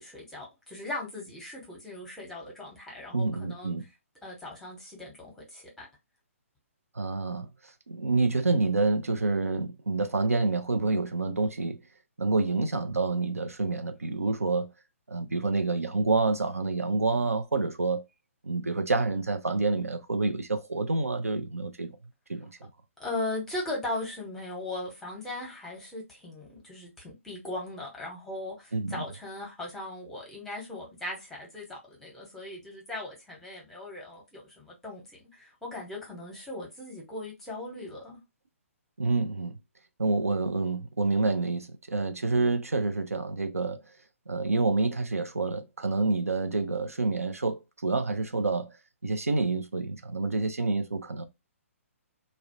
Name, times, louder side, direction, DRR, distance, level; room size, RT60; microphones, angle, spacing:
voice 1, 0.0-3.8 4.2-5.8 23.0-38.2, left 2 dB, 5° left, 0.8 m, -38 dB
voice 2, 3.1-3.8 6.9-11.8 12.2-14.7 15.1-18.0 18.4-22.0 22.3-22.7 28.7-29.0 39.0-39.6 40.0-43.8 44.3-48.8 49.0-51.2, right 3 dB, 80° right, 0.4 m, -28 dB
2.3 x 2.0 x 2.7 m
figure-of-eight pair, 130°, 8 cm